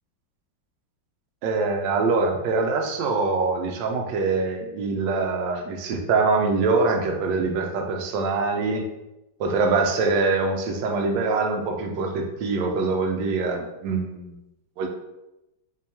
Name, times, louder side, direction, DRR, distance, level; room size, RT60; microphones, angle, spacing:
voice 1, 1.4-8.8 9.4-14.4 14.8-14.9, right 3 dB, 70° right, 3 dB, 1.2 m, -24 dB
3.7 x 2.9 x 2.8 m, 0.93 s
omnidirectional pair, 2.2 m